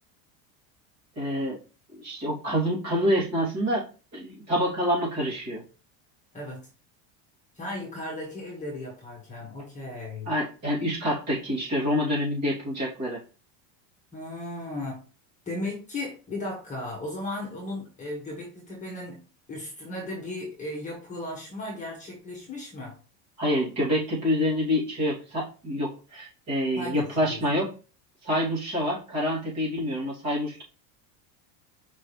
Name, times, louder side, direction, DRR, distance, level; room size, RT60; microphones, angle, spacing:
voice 1, 1.2-1.6 2.0-3.8 4.1-5.6 10.3-13.2 23.4-27.7 28.2-30.6, equal, 30° right, -5 dB, 3.1 m, -27 dB
voice 2, 7.5-10.3 14.1-15.0 15.4-19.2 19.5-22.9 26.7-27.4, left 1 dB, 15° left, -3 dB, 1.8 m, -36 dB
5.5 x 5.2 x 3.3 m, 0.35 s
cardioid pair, 160°, 50 cm